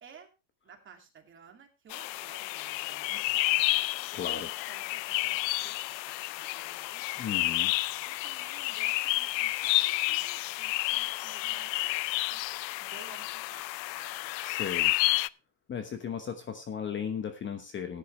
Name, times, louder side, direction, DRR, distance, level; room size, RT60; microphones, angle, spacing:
voice 1, 0.6-7.4 8.0-12.5 12.8-14.4, right 7 dB, 25° right, 3 dB, 2.6 m, -55 dB
sound 1, 1.9-15.3, left 19 dB, 85° left, 0.6 m, -30 dB
voice 2, 4.1-4.5 7.2-7.7 14.4-14.9 15.7-18.0, left 7 dB, 25° left, 8 dB, 1.1 m, -36 dB
14.0 x 10.5 x 3.3 m, 0.28 s
supercardioid pair, 135°, 50 cm